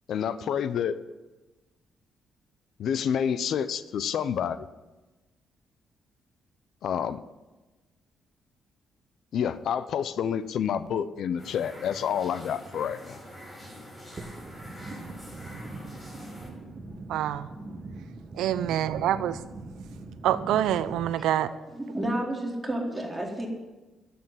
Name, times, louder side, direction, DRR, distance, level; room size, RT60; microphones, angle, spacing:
voice 1, 0.1-0.9 2.8-4.6 6.8-7.2 9.3-13.2, left 8 dB, 70° left, 14 dB, 0.8 m, -28 dB
sound 1, 11.4-16.5, equal, 15° left, 5.9 m, -45 dB
sound 2, 14.2-21.1, right 2 dB, 35° right, 1.7 m, -41 dB
voice 2, 17.1-17.5 18.3-19.4 20.2-21.5, right 11 dB, 85° right, 14 dB, 0.7 m, -26 dB
voice 3, 21.7-23.5, right 1 dB, 10° right, -2 dB, 3.9 m, -31 dB
11.5 x 8.5 x 9.8 m, 1.1 s
cardioid pair, 80°, 0 cm